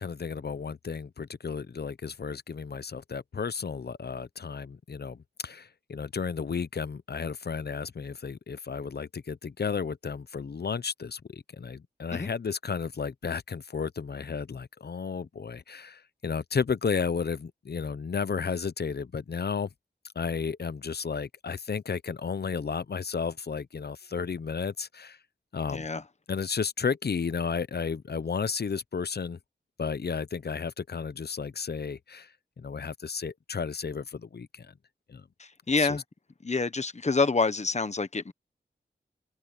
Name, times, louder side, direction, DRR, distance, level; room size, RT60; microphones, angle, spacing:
voice 1, 0.0-19.7 20.1-25.2 25.5-25.9 26.3-29.4 29.8-34.7 35.1-35.2 35.8-36.0, left 5 dB, 60° left, 0.8 m, -33 dB
voice 2, 25.7-26.0 35.4-36.0 36.4-38.3, left 4 dB, 40° left, 1.2 m, -27 dB
open air
cardioid pair, 50°, 19 cm